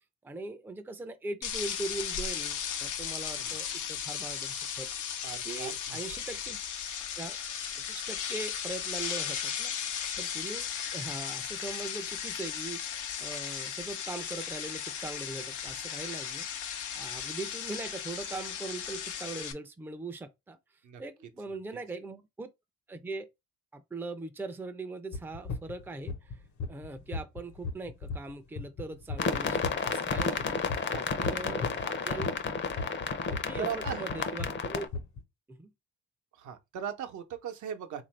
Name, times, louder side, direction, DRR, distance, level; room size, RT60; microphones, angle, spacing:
voice 1, 0.2-4.9 5.4-6.6 7.2-7.4 7.9-16.7 16.9-20.6 21.0-22.5 22.9-23.3 23.7-26.4 26.7-30.6 31.2-32.2 33.3-34.9 35.5-35.7, right 2 dB, 5° right, 0.4 m, -41 dB
sound 1, 1.4-19.5, left 8 dB, 85° left, 0.7 m, -36 dB
voice 2, 5.2-6.0 20.8-21.0 21.5-21.6 30.9-32.2 33.6-34.2 36.3-38.0, right 9 dB, 75° right, 0.8 m, -40 dB
sound 2, 25.1-31.9 32.2-35.2, left 4 dB, 70° left, 1.0 m, -36 dB
sound 3, 29.2-34.9, left 5 dB, 40° left, 0.6 m, -32 dB
3.6 x 2.6 x 3.2 m
cardioid pair, 90°, 30 cm